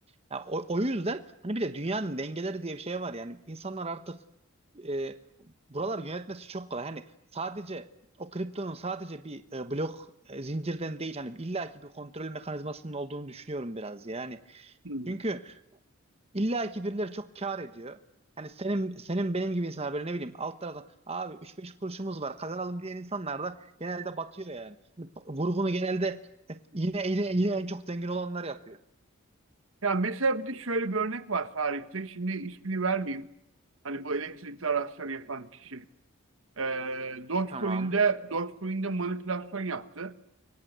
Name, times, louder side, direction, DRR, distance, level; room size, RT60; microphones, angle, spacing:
voice 1, 0.3-4.2 4.7-5.2 5.7-7.0 7.3-7.9 8.2-14.7 15.1-15.6 16.3-18.0 18.4-26.2 26.7-28.8 37.5-37.9, right 2 dB, 30° right, 1.2 m, -33 dB
voice 2, 14.8-15.2 29.8-33.3 33.8-35.8 36.6-40.2, right 4 dB, 70° right, 1.4 m, -30 dB
30.0 x 24.0 x 8.2 m
head